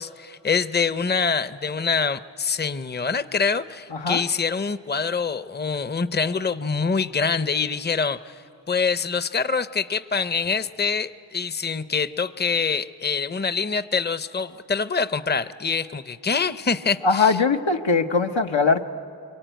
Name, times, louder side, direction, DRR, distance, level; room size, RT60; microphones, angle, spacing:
voice 1, 0.0-8.4 8.7-17.4, left 5 dB, 25° left, 13 dB, 0.6 m, -25 dB
voice 2, 3.9-4.2 17.0-18.8, left 4 dB, 90° left, 4 dB, 1.1 m, -21 dB
26.5 x 23.0 x 9.1 m, 2.6 s
wide cardioid pair, 50°, 44 cm